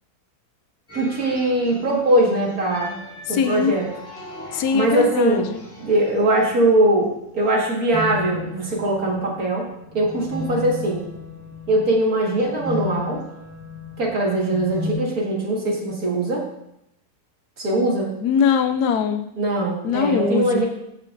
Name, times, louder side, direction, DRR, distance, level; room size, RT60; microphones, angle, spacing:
sound 1, 0.9-14.9, left 3 dB, 10° left, 1.5 m, -35 dB
voice 1, 0.9-3.0 3.3-3.9 4.5-5.5 5.8-9.7 9.9-11.0 11.7-13.2 14.0-16.5 17.6-18.2 19.4-20.7, right 1 dB, 65° right, -3 dB, 2.2 m, -21 dB
voice 2, 3.3-3.7 4.5-5.6 18.2-19.3 19.8-20.6, left 6 dB, 80° left, 8 dB, 1.2 m, -21 dB
14.5 x 5.3 x 2.6 m, 0.80 s
omnidirectional pair, 1.7 m